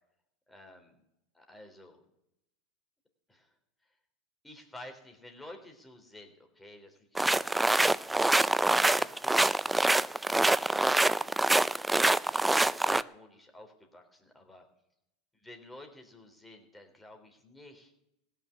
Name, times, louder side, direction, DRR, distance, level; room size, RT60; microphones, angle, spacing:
voice 1, 0.5-1.0 1.3-2.0 3.3-3.5 4.4-9.8 10.8-11.2 12.2-14.6 15.4-17.9, left 1 dB, 10° left, 4 dB, 3.6 m, -51 dB
sound 1, 7.2-13.0, right 2 dB, 5° right, 0.4 m, -25 dB
16.5 x 6.8 x 9.8 m, 0.82 s
hypercardioid pair, 110°, 0 cm